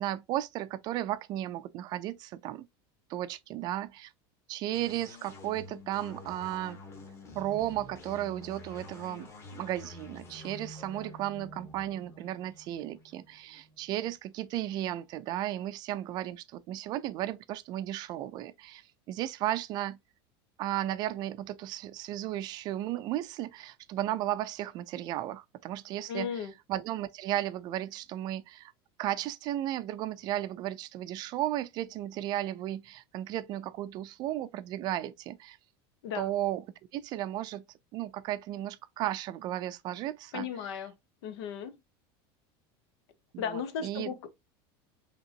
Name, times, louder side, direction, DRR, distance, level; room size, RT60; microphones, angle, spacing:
voice 1, 0.0-2.7 3.1-4.1 4.5-6.8 7.4-18.8 19.1-20.0 20.6-28.7 29.0-35.6 36.1-36.6 36.9-37.6 37.9-40.7 43.3-44.2, right 13 dB, 30° right, 0.4 m, -34 dB
sound 1, 4.7-14.2, left 1 dB, 20° left, 1.1 m, -48 dB
voice 2, 26.1-26.5 36.0-36.3 40.3-40.9 41.2-41.7 43.4-44.3, left 7 dB, 90° left, 1.0 m, -35 dB
5.2 x 2.9 x 2.8 m
supercardioid pair, 170°, 13 cm